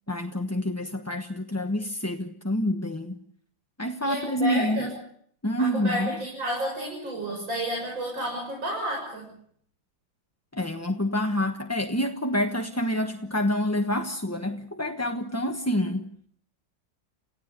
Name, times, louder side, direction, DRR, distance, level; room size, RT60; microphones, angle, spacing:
voice 1, 0.1-3.1 3.8-4.9 5.4-6.1 10.5-16.1, equal, 10° left, 4 dB, 0.9 m, -27 dB
voice 2, 4.0-4.9 5.6-9.3, equal, 75° right, -1 dB, 7.7 m, -31 dB
29.5 x 16.5 x 8.2 m, 0.64 s
omnidirectional pair, 2.1 m